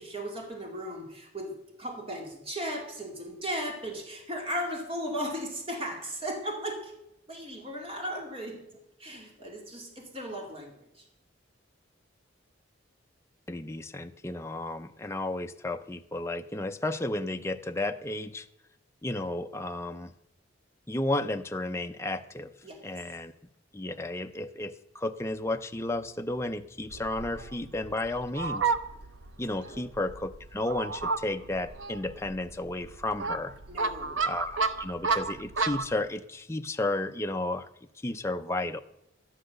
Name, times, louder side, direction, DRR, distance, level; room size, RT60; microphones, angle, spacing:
voice 1, 0.0-6.9 7.3-11.1 22.6-23.0 29.6-29.9 33.7-34.2, equal, 30° right, 1 dB, 2.3 m, -36 dB
voice 2, 13.5-18.5 19.0-20.1 20.9-22.5 22.8-23.3 23.7-28.7 29.4-33.5 34.2-37.7 38.0-38.8, left 2 dB, 15° left, 6 dB, 0.5 m, -33 dB
Fowl, 26.9-35.9, right 4 dB, 70° right, 0.8 m, -33 dB
12.5 x 10.0 x 6.5 m, 0.85 s
head